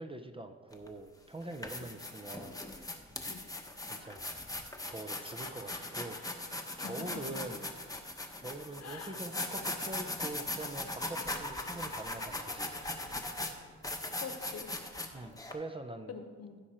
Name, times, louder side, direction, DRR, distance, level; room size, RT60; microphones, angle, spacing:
voice 1, 0.0-2.6 3.8-4.6 4.9-7.7 8.4-12.8 15.1-16.1, right 2 dB, 20° right, 6 dB, 0.6 m, -44 dB
sound 1, 0.7-0.9 1.4-15.5, left 2 dB, 10° left, 0.9 m, -39 dB
voice 2, 6.8-7.4 8.8-9.2 14.2-14.8 16.1-16.6, left 5 dB, 55° left, 6 dB, 1.1 m, -45 dB
15.0 x 5.9 x 4.3 m, 1.5 s
cardioid pair, 115°, 30 cm